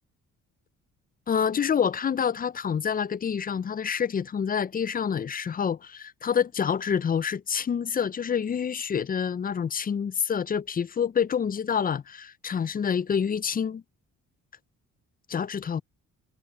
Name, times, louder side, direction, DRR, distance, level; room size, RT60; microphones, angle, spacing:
voice 1, 1.3-13.8 15.3-15.8, left 7 dB, 30° left, 0.5 m, -27 dB
cardioid pair, 90°, 30 cm